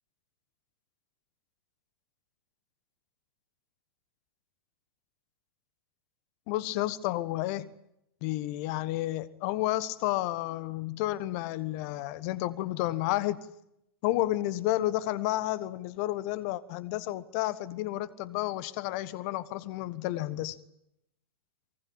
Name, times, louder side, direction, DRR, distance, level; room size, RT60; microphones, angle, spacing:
voice 1, 6.5-7.7 8.2-13.4 14.0-20.6, left 16 dB, 45° left, 1.4 m, -31 dB
24.0 x 23.0 x 8.7 m
figure-of-eight pair, 105°, 12 cm